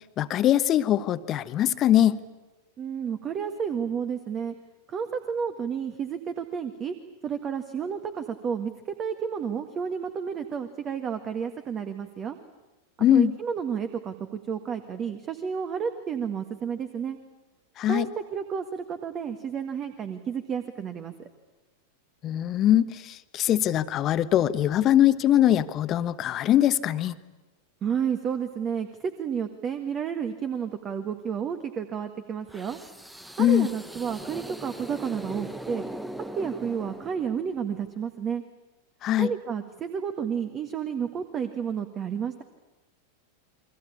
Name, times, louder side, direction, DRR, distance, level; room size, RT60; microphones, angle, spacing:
voice 1, 0.2-2.2 13.0-13.3 17.8-18.1 22.2-27.1 33.4-33.7 39.0-39.3, left 12 dB, 30° left, 13 dB, 1.1 m, -22 dB
voice 2, 2.8-4.5 4.9-6.9 7.2-12.4 13.1-17.2 17.9-21.3 27.8-32.8 33.4-35.8 36.4-38.4 39.2-42.4, right 7 dB, 25° right, 9 dB, 1.6 m, -31 dB
sound 1, 32.5-37.6, right 1 dB, 5° right, 1.2 m, -40 dB
29.5 x 23.5 x 8.6 m, 1.1 s
figure-of-eight pair, 90°, 0 cm